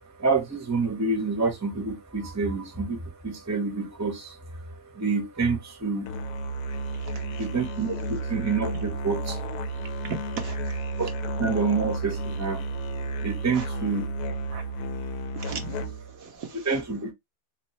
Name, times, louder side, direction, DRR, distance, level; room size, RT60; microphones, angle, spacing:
voice 1, 0.2-6.1 6.4-9.4 9.8-9.9 11.0-14.4 14.8-15.2 16.1-17.1, right 4 dB, 15° right, 0.7 m, -29 dB
Musical instrument, 6.1-16.2, right 2 dB, 75° left, 1.1 m, -32 dB
voice 2, 7.1-7.5 10.0-10.7 13.5-13.7 14.5-14.6 15.4-15.9 16.2-16.6, right 6 dB, 65° right, 1.1 m, -37 dB
3.3 x 3.1 x 3.0 m
omnidirectional pair, 1.7 m